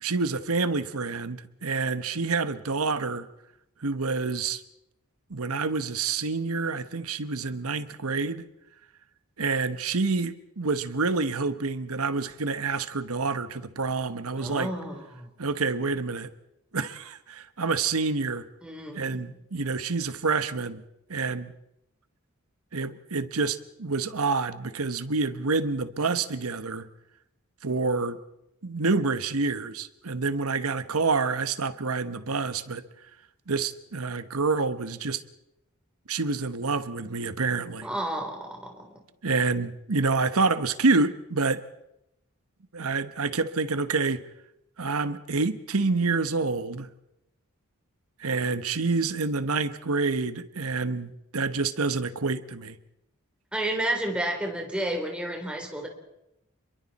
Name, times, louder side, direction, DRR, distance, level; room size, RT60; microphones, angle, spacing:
voice 1, 0.0-3.3 3.8-4.6 5.3-8.5 9.4-14.7 15.4-16.3 16.7-18.5 19.0-20.8 21.1-21.5 22.7-26.9 27.6-28.2 28.6-32.8 33.5-35.2 36.1-37.9 39.2-41.6 42.7-44.2 44.8-46.9 48.2-52.8, right 4 dB, 80° right, 12 dB, 1.2 m, -27 dB
voice 2, 14.4-15.3 18.6-19.3 37.8-39.0 53.5-55.9, right 1 dB, 5° right, 2 dB, 3.6 m, -31 dB
29.5 x 22.5 x 4.2 m, 0.84 s
head